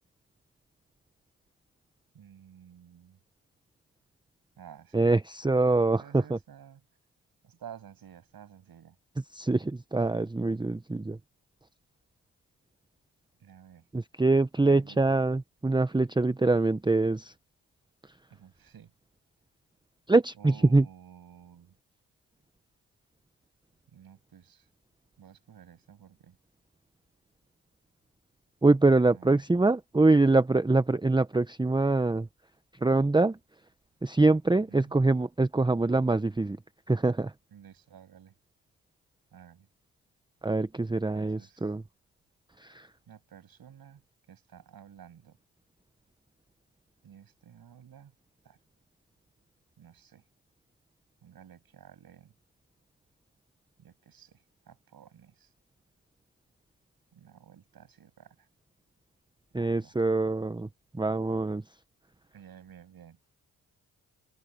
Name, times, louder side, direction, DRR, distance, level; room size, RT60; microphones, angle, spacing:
voice 1, 2.1-3.2 4.6-5.2 5.9-6.8 7.4-9.0 13.4-13.9 14.6-15.2 18.3-18.9 20.4-21.7 23.9-24.7 25.2-26.4 29.0-29.4 34.5-34.9 37.5-38.3 39.3-39.7 41.1-41.7 43.1-44.0 44.3-45.4 47.0-48.1 48.4-48.6 49.8-50.2 51.2-52.3 53.8-55.5 57.1-58.5 59.5-59.9 62.3-63.2, right 9 dB, 65° right, 7.3 m, -52 dB
voice 2, 4.9-6.4 9.3-11.2 13.9-17.3 20.1-20.9 28.6-32.3 32.8-33.4 34.0-36.6 36.9-37.3 40.4-41.8 42.6-42.9 59.5-60.7 60.9-61.6, right 2 dB, 10° right, 1.0 m, -24 dB
supercardioid pair, 50°, 38 cm